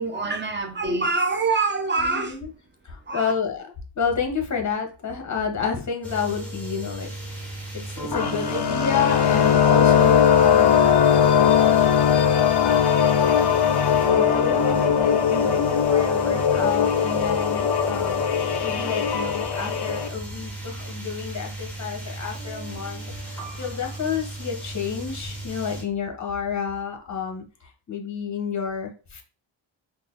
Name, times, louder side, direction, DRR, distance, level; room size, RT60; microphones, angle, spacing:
voice 1, 0.0-2.4 3.1-3.3, right 3 dB, 25° right, 0.6 m, -25 dB
voice 2, 2.0-2.5 2.8-3.6 3.9-7.4 7.9-12.0 12.6-18.2 18.6-29.2, left 6 dB, 35° left, 0.9 m, -30 dB
sound 1, 6.0-25.8, right 2 dB, 5° left, 1.0 m, -35 dB
sound 2, 8.1-20.1, left 8 dB, 55° left, 0.5 m, -20 dB
3.9 x 2.0 x 3.7 m
wide cardioid pair, 135°, 47 cm